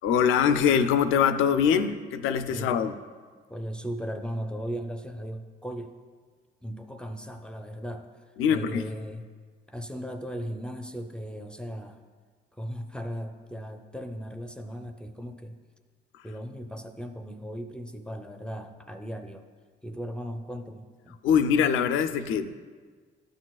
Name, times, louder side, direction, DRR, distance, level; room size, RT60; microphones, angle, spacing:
voice 1, 0.0-2.9 8.4-8.8 21.2-22.5, left 7 dB, 90° left, 10 dB, 0.4 m, -23 dB
voice 2, 3.5-5.9 6.6-8.1 8.5-9.3 9.7-12.0 12.5-15.6 16.2-19.4 19.8-21.2, equal, 5° left, 6 dB, 0.5 m, -37 dB
12.0 x 6.2 x 2.3 m, 1.5 s
cardioid pair, 90°, 20 cm